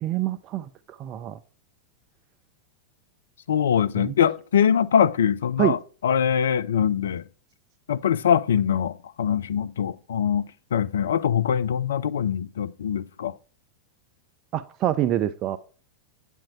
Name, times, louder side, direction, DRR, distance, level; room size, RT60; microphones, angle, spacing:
voice 1, 0.0-1.4 4.0-4.1 5.6-5.8 14.5-15.6, right 12 dB, 35° right, 0.4 m, -26 dB
voice 2, 3.5-7.2 7.9-13.3, left 8 dB, 65° left, 0.4 m, -23 dB
8.6 x 3.6 x 5.8 m
figure-of-eight pair, 90°, 0 cm